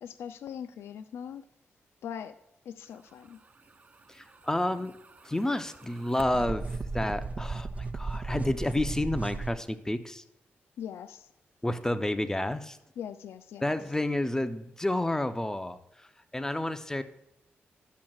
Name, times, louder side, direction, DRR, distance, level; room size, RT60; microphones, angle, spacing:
voice 1, 0.0-1.4 2.0-2.3 2.7-3.4 10.8-11.3 13.0-13.8, left 8 dB, 85° left, 10 dB, 0.4 m, -41 dB
voice 2, 4.1-4.9 5.2-7.7 7.9-10.2 11.6-12.8 13.6-16.1 16.3-17.0, left 1 dB, 15° left, 10 dB, 0.6 m, -30 dB
sound 1, 4.4-9.5, right 3 dB, 35° right, 0.4 m, -36 dB
10.5 x 7.3 x 2.3 m, 0.86 s
cardioid pair, 65°, 4 cm